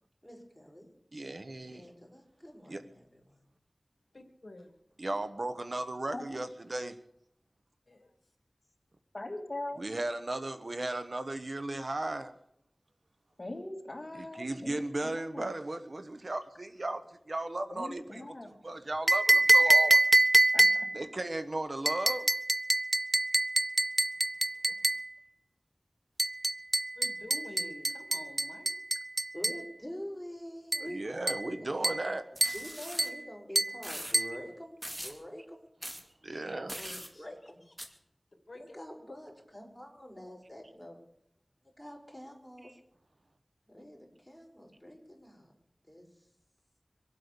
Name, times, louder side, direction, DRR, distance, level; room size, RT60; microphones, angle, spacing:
voice 1, 0.2-0.9 1.7-3.0 3.3-3.4 29.3-31.1 31.4-32.2 32.5-35.6 36.3-36.4 36.9-37.6 38.5-41.0 41.8-42.8 43.7-45.5 45.9-46.1, equal, 5° left, -1 dB, 5.9 m, -46 dB
voice 2, 1.1-1.8 2.7-2.8 5.0-7.0 9.8-12.4 14.1-20.0 20.9-22.3 30.8-32.3 36.2-36.8 42.6-42.7, right 2 dB, 65° right, 10 dB, 1.1 m, -36 dB
voice 3, 4.1-4.7 7.9-8.1 26.9-28.7 36.8-37.5 38.5-38.8, left 2 dB, 70° left, 3 dB, 2.6 m, -49 dB
voice 4, 6.1-6.5 9.1-9.8 13.4-14.8 15.0-15.5 17.7-18.5 20.5-20.6, left 1 dB, 50° left, 2 dB, 3.0 m, -41 dB
sound 1, 19.1-21.0 21.9-25.1 26.2-29.7 30.7-30.9 31.3-31.5 31.8-32.1 32.4-32.7 33.0-33.2 33.6-33.8 34.1-34.4, right 1 dB, 35° right, 0.6 m, -26 dB
sound 2, 32.3-33.1 33.8-34.1 34.8-35.2 35.8-36.0 36.7-37.1 37.8-37.9, equal, 20° right, 2.5 m, -41 dB
24.0 x 8.5 x 6.8 m, 0.76 s
wide cardioid pair, 40°, 0 cm